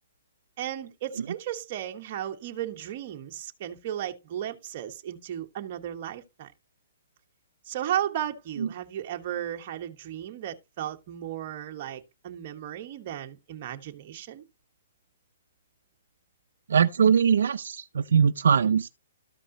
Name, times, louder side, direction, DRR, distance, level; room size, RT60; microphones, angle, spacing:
voice 1, 0.6-6.5 7.6-14.4, right 11 dB, 40° right, 1.2 m, -35 dB
voice 2, 16.7-18.9, right 7 dB, 80° right, 0.5 m, -21 dB
13.5 x 5.3 x 2.7 m
hypercardioid pair, 160°, 0 cm